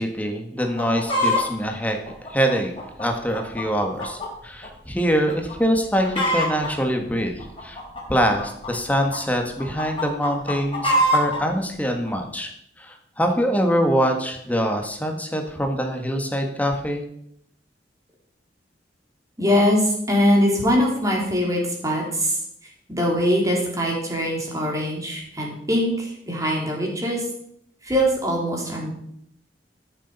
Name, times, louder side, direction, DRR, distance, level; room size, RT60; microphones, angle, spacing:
voice 1, 0.0-2.0 2.3-2.7 3.0-7.8 8.1-12.5 12.8-17.1, equal, 10° left, 4 dB, 1.6 m, -24 dB
Chicken rooster, 0.6-1.4 2.1-4.3 4.6-4.7 5.3-5.5 5.8-6.7 7.4-9.2 9.6-11.4 12.1-12.2, equal, 30° left, 3.1 m, -24 dB
voice 2, 19.4-22.4 22.9-27.2 27.8-28.9, equal, 20° right, -1 dB, 3.3 m, -22 dB
13.5 x 7.0 x 5.5 m, 0.72 s
head